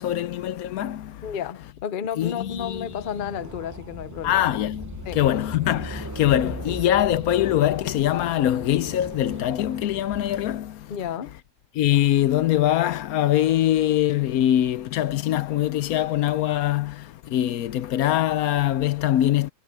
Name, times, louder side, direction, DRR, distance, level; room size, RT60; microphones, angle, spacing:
voice 1, 0.0-1.3 2.2-2.9 4.2-10.9 11.7-19.5, left 12 dB, 80° left, 1.1 m, -23 dB
voice 2, 1.2-4.5 5.1-5.2 6.4-6.8 10.9-11.3, left 8 dB, 45° left, 0.7 m, -32 dB
sound 1, 2.4-10.6, right 2 dB, 15° right, 0.8 m, -39 dB
omnidirectional pair, 1.5 m